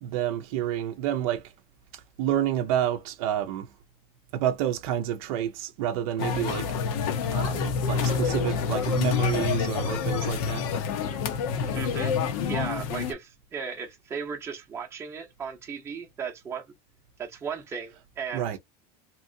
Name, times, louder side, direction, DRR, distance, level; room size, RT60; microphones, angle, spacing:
voice 1, 0.0-1.5 1.9-3.7 4.3-6.8 7.3-10.7 17.9-18.0 18.3-18.6, right 11 dB, 75° right, 0.5 m, -29 dB
sound 1, 6.2-13.1, left 6 dB, 90° left, 0.8 m, -27 dB
voice 2, 11.7-12.1 12.5-16.6 17.2-18.5, right 6 dB, 15° right, 0.6 m, -36 dB
2.8 x 2.6 x 2.6 m
cardioid pair, 180°, 18 cm